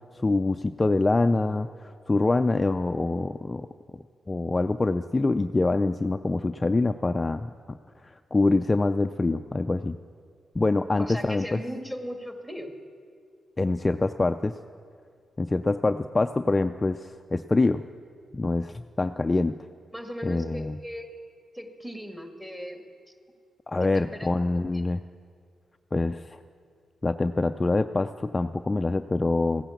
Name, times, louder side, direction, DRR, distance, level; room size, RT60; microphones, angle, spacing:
voice 1, 0.2-3.7 4.3-7.5 8.0-10.0 10.6-11.6 13.6-14.5 15.4-17.8 18.3-19.6 20.2-20.8 23.7-25.0 25.9-26.4 27.0-29.6, left 2 dB, 25° left, 9 dB, 0.4 m, -25 dB
voice 2, 10.8-12.7 19.9-21.1 21.5-22.8 23.8-24.3 24.7-24.8, equal, 5° right, 4 dB, 1.8 m, -38 dB
15.5 x 10.0 x 7.0 m, 2.2 s
cardioid pair, 70°, 0 cm